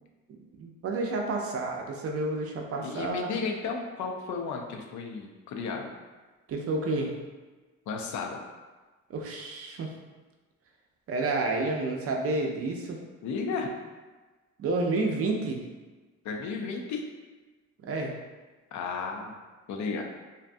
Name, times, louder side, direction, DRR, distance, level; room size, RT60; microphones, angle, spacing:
voice 1, 0.3-3.3 6.5-7.1 9.1-9.9 11.1-13.0 14.6-15.6 17.8-18.1, right 2 dB, 50° right, 1 dB, 0.5 m, -30 dB
voice 2, 2.8-5.9 7.9-8.4 13.2-13.7 16.2-17.0 18.7-19.4 19.7-20.0, left 4 dB, 70° left, 2 dB, 0.5 m, -33 dB
2.6 x 2.2 x 2.5 m, 1.3 s
cardioid pair, 90°, 30 cm